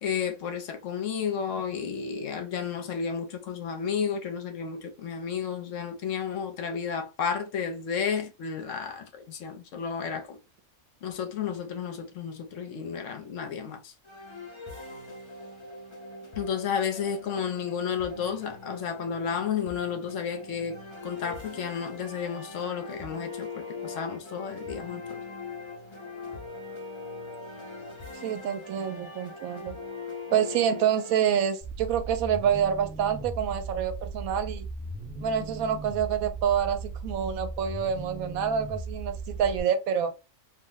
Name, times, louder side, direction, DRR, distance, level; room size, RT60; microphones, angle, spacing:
voice 1, 0.0-10.4 11.0-13.9 16.4-20.8 21.0-25.2, left 7 dB, 70° left, 1.0 m, -32 dB
sound 1, 14.0-31.1, left 3 dB, 25° left, 0.7 m, -41 dB
voice 2, 28.2-29.8 30.3-34.7 35.2-40.1, right 8 dB, 90° right, 1.0 m, -27 dB
sound 2, 31.6-39.6, right 3 dB, 10° right, 0.8 m, -38 dB
2.5 x 2.0 x 3.7 m
omnidirectional pair, 1.4 m